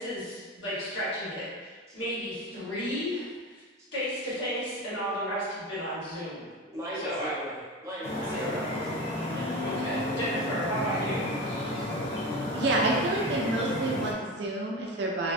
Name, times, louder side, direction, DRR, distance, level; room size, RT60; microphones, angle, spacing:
voice 1, 0.0-3.6 3.9-6.4 6.9-7.3 8.3-8.7 9.6-11.2, equal, 75° left, -11 dB, 1.2 m, -33 dB
voice 2, 6.7-9.4, equal, 15° right, -9 dB, 0.6 m, -39 dB
sound 1, 8.0-14.1, left 1 dB, 35° left, 0.3 m, -32 dB
voice 3, 12.5-15.3, right 2 dB, 60° right, -2 dB, 0.3 m, -28 dB
2.4 x 2.1 x 2.5 m, 1.4 s
head